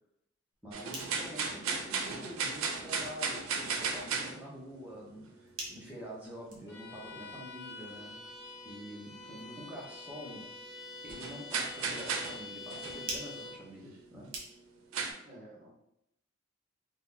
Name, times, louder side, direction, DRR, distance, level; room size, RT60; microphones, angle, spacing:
sound 1, 0.5-14.9, right 2 dB, 70° right, 0.9 m, -50 dB
voice 1, 0.6-8.2 8.6-10.5 11.0-14.3, equal, 5° right, -5 dB, 0.8 m, -46 dB
sound 2, 0.7-4.8 9.6-9.7 10.3-10.4 11.1-12.4 12.7-13.1 14.1-14.3 14.9-15.1, right 5 dB, 85° right, 0.5 m, -35 dB
Bowed string instrument, 6.7-13.7, left 3 dB, 55° left, 0.6 m, -46 dB
voice 2, 9.2-9.6 15.2-15.7, right 1 dB, 35° right, -4 dB, 1.1 m, -52 dB
2.8 x 2.3 x 3.7 m, 0.78 s
head